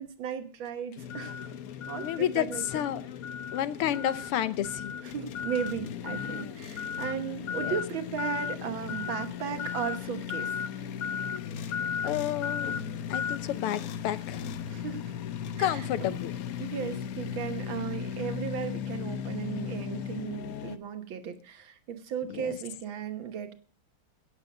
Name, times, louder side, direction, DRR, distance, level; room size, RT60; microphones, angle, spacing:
voice 1, 0.0-1.4 1.9-2.8 5.0-10.5 14.7-15.1 15.6-16.2 16.6-23.5, right 8 dB, 65° right, 8 dB, 1.9 m, -36 dB
sound 1, 1.0-20.8, left 8 dB, 70° left, 0.8 m, -36 dB
voice 2, 2.0-2.5 2.7-3.0 3.5-4.9 7.5-7.7 12.0-12.8 13.1-14.5 15.6-16.3 22.3-22.6, left 11 dB, 90° left, 14 dB, 1.8 m, -30 dB
17.0 x 8.2 x 5.2 m, 0.42 s
omnidirectional pair, 2.4 m